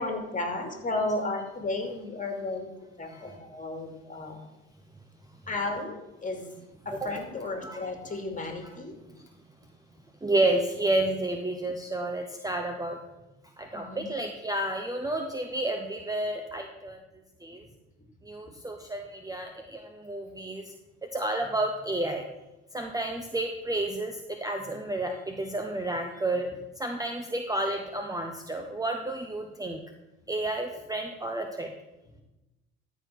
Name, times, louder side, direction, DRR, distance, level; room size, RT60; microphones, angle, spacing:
voice 1, 0.0-2.7 3.0-4.4 5.5-6.5 6.8-9.0 13.7-14.1, left 2 dB, 25° left, 4 dB, 2.6 m, -33 dB
voice 2, 10.2-13.0 13.6-17.0 17.4-17.6 18.2-20.7 21.1-22.2 22.7-26.5 26.8-29.8 30.3-31.7, right 2 dB, 10° right, 4 dB, 1.0 m, -31 dB
13.5 x 4.7 x 6.0 m, 0.99 s
hypercardioid pair, 65°, 34 cm